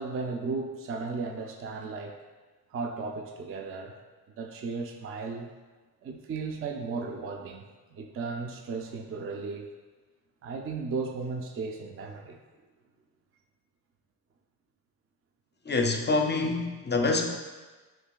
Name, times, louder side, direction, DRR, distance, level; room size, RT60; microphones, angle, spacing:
voice 1, 0.0-2.2 2.7-3.9 4.4-5.5 6.0-7.6 7.9-9.7 10.4-12.4, right 4 dB, 35° right, 3 dB, 0.4 m, -35 dB
voice 2, 15.6-17.3, left 3 dB, 25° left, 3 dB, 0.5 m, -26 dB
5.8 x 2.5 x 2.2 m, 1.3 s
supercardioid pair, 50°, 40 cm